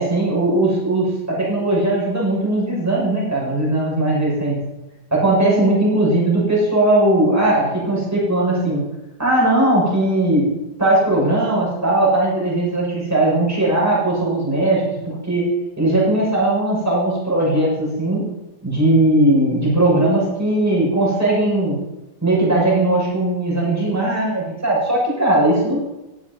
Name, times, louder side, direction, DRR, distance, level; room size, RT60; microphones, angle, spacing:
voice 1, 0.0-4.6 5.1-8.8 9.2-10.5 10.8-15.5 15.8-18.2 18.6-21.8 22.2-25.8, right 1 dB, 10° right, -6 dB, 6.9 m, -18 dB
15.0 x 11.0 x 5.6 m, 0.98 s
omnidirectional pair, 2.0 m